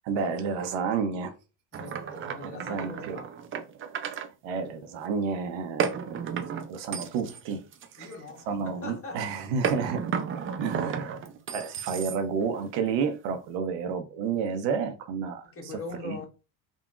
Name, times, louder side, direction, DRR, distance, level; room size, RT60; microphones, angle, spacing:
voice 1, 0.0-1.3 2.4-3.2 4.1-6.4 6.7-7.6 8.0-8.1 8.5-10.0 10.4-11.2 11.5-15.7 16.0-16.2, right 6 dB, 70° right, 0.6 m, -31 dB
voice 2, 1.7-3.5 8.0-9.2 15.5-16.3, left 3 dB, 30° left, 1.1 m, -41 dB
sound 1, 1.7-4.3 5.8-8.4 9.6-12.5, right 7 dB, 30° right, 0.4 m, -33 dB
3.7 x 2.0 x 2.3 m
supercardioid pair, 80°, 47 cm